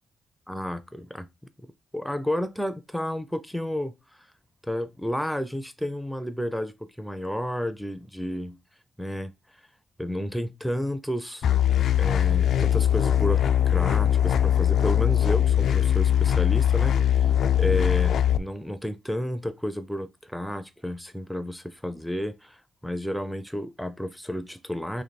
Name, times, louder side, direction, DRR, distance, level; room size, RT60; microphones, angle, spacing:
voice 1, 0.5-1.3 1.9-4.0 4.7-8.6 9.0-9.3 10.0-11.5 12.0-13.4 13.7-22.6 22.8-25.0, equal, ahead, 0.5 m, -31 dB
sound 1, 11.4-18.4, left 10 dB, 70° left, 0.3 m, -21 dB
3.3 x 3.0 x 4.0 m
cardioid pair, 115°, 0 cm